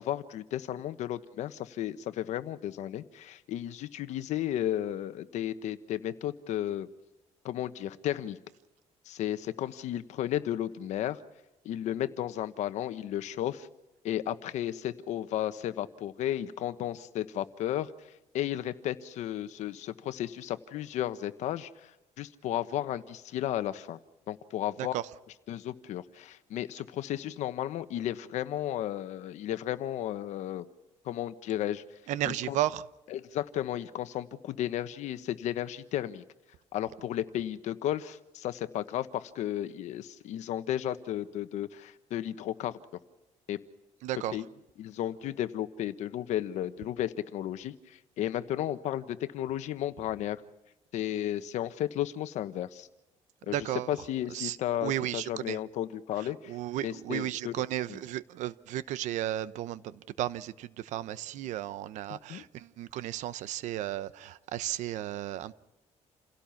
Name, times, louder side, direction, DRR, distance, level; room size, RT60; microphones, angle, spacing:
voice 1, 0.0-6.9 7.4-8.4 9.0-11.2 11.6-13.7 14.0-18.1 18.3-21.9 22.2-24.0 24.3-24.9 25.5-30.7 31.0-31.8 32.3-32.5 33.1-36.2 36.7-42.8 43.5-43.6 44.3-44.4 44.8-50.4 50.9-52.9 53.4-53.6 53.9-56.5 56.8-57.5 62.1-62.4, left 12 dB, 75° left, 12 dB, 1.2 m, -33 dB
voice 2, 24.8-25.1 32.1-32.9 44.0-44.4 53.5-54.0 54.3-55.6 56.2-65.5, right 13 dB, 85° right, 16 dB, 0.9 m, -34 dB
29.0 x 17.0 x 5.8 m, 0.99 s
cardioid pair, 135°, 12 cm